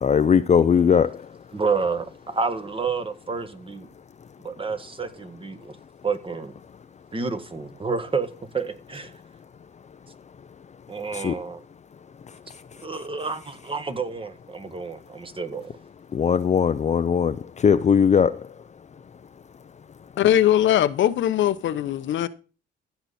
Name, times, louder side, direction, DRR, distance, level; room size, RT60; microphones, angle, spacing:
voice 1, 0.0-1.1 11.1-11.3 16.1-17.4 17.6-18.4, left 7 dB, 35° left, 0.5 m, -19 dB
voice 2, 1.5-3.9 4.4-5.7 6.0-6.5 7.1-8.3 8.5-9.1 10.9-11.6 12.8-15.7, right 4 dB, 25° right, 1.6 m, -29 dB
voice 3, 20.2-22.3, left 11 dB, 70° left, 0.8 m, -20 dB
15.0 x 6.8 x 4.3 m
cardioid pair, 90°, 20 cm